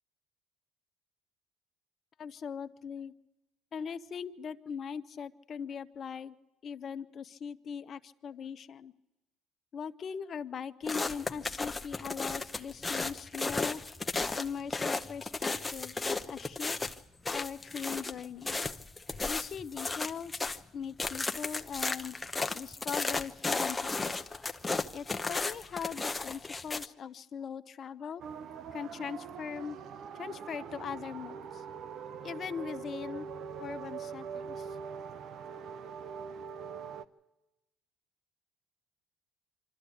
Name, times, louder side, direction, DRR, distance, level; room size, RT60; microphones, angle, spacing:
voice 1, 2.2-3.1 3.7-6.3 6.6-8.9 9.7-13.8 14.3-16.8 17.3-18.6 19.3-20.4 20.7-22.2 22.5-24.3 24.9-28.2 28.7-29.8 30.1-31.6 32.2-33.3 33.6-34.8, left 7 dB, 50° left, 11 dB, 0.9 m, -40 dB
sound 1, 10.9-20.6 21.0-26.9, left 3 dB, 15° left, 0.9 m, -34 dB
sound 2, 28.2-37.0, right 7 dB, 60° right, 0.8 m, -43 dB
24.5 x 13.0 x 8.6 m, 0.99 s
supercardioid pair, 85°, 0 cm